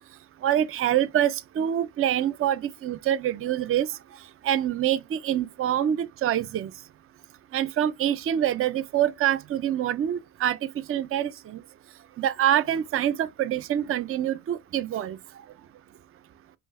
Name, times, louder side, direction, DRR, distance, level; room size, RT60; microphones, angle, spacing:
voice 1, 0.4-3.9 4.4-6.7 7.5-10.6 10.9-11.6 12.2-15.2, right 11 dB, 35° right, 0.4 m, -25 dB
5.3 x 2.1 x 3.4 m
cardioid pair, 95°, 44 cm